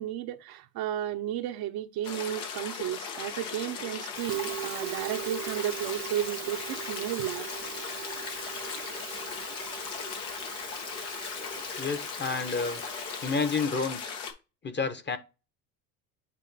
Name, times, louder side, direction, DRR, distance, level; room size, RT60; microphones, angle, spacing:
voice 1, 0.0-7.5, right 12 dB, 55° right, 0.9 m, -33 dB
sound 1, 2.0-14.3, left 6 dB, 75° left, 1.7 m, -38 dB
Musical instrument, 4.2-13.6, right 14 dB, 30° right, 0.5 m, -41 dB
voice 2, 11.8-12.8 13.2-14.2 14.6-15.2, left 4 dB, 25° left, 1.1 m, -30 dB
8.5 x 2.9 x 4.1 m
hypercardioid pair, 75°, 45 cm